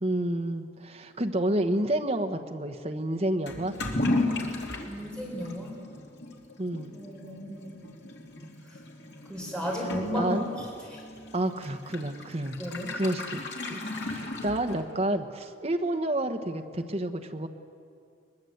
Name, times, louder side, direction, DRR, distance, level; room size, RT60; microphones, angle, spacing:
voice 1, 0.0-3.7 6.6-6.9 10.1-10.4 11.3-12.6 12.9-13.4 13.7-17.5, right 1 dB, 35° right, 6 dB, 1.2 m, -29 dB
Toilet flush / Liquid, 3.5-15.1, left 2 dB, 65° left, 2.7 m, -35 dB
voice 2, 4.8-5.8 6.9-7.9 8.7-8.8 9.3-11.0 12.6-12.9, equal, 5° left, -3 dB, 4.4 m, -34 dB
22.0 x 21.5 x 8.0 m, 2.4 s
head